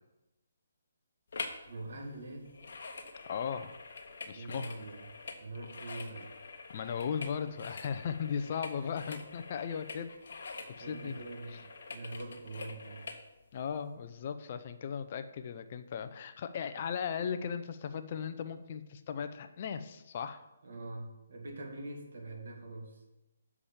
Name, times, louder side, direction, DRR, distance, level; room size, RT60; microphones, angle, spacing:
sound 1, 1.3-1.7 1.9-13.2 13.8-13.9, left 4 dB, 65° left, 1.1 m, -46 dB
voice 1, 1.7-2.6 4.3-6.3 8.7-8.9 10.8-13.1 20.6-23.0, right 2 dB, 65° right, 2 dB, 2.0 m, -44 dB
voice 2, 3.3-3.7 4.3-4.7 6.7-10.1 10.8-11.1 13.5-20.5, left 7 dB, 45° left, 9 dB, 0.6 m, -37 dB
7.2 x 4.9 x 7.0 m, 0.98 s
hypercardioid pair, 150°, 0 cm